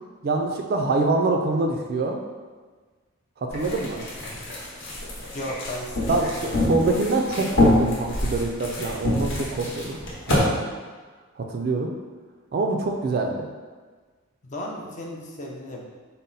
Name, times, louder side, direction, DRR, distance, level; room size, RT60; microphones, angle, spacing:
voice 1, 0.2-2.2 3.4-4.0 6.1-10.0 10.3-10.7 11.4-11.9 12.5-13.5, right 3 dB, 45° right, 2 dB, 0.3 m, -25 dB
sound 1, 3.5-10.4, left 1 dB, 55° left, 0.9 m, -26 dB
voice 2, 5.3-6.7 14.4-15.8, left 1 dB, 35° left, -1 dB, 0.4 m, -35 dB
4.0 x 2.1 x 3.8 m, 1.4 s
head